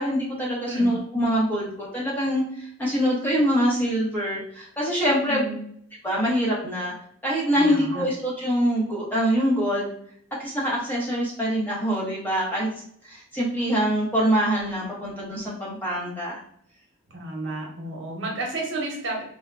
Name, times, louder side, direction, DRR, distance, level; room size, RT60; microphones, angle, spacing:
voice 1, 0.0-5.4 6.0-6.9 7.2-9.9 10.4-12.7 13.1-16.4, equal, 10° left, -5 dB, 0.8 m, -24 dB
voice 2, 5.2-5.5 7.5-8.1 17.1-19.2, right 2 dB, 70° right, -1 dB, 0.9 m, -31 dB
3.4 x 2.1 x 2.4 m, 0.66 s
head